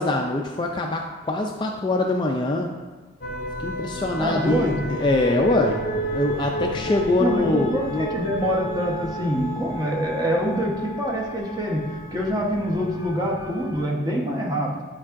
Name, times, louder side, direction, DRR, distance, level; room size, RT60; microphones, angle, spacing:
voice 1, 0.0-2.7 3.6-8.1, left 2 dB, 25° left, 2 dB, 0.3 m, -24 dB
sound 1, 3.2-13.8, equal, 45° left, 0.7 m, -32 dB
voice 2, 4.2-4.9 7.2-14.7, equal, 20° right, -2 dB, 0.9 m, -25 dB
9.7 x 4.6 x 2.5 m, 1.3 s
head